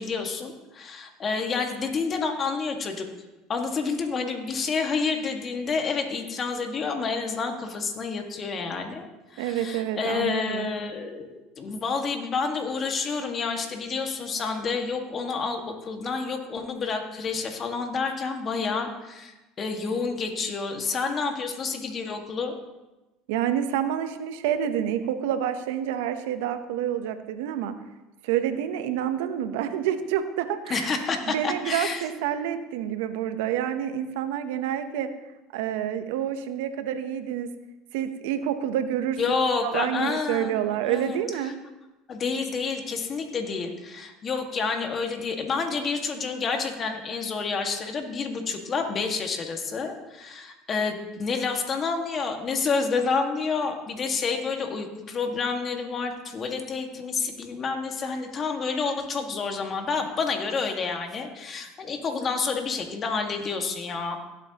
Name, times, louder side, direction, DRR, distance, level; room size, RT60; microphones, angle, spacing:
voice 1, 0.0-3.1 3.5-9.1 9.3-22.5 30.7-32.0 39.2-40.5 40.8-41.2 42.1-64.2, left 4 dB, 40° left, 4 dB, 1.8 m, -29 dB
voice 2, 9.4-10.7 23.3-27.7 28.2-31.0 31.3-35.1 35.5-37.5 37.9-39.2 39.6-41.5, right 10 dB, 80° right, 10 dB, 0.8 m, -28 dB
16.5 x 7.9 x 2.9 m, 1.1 s
supercardioid pair, 90°, 0 cm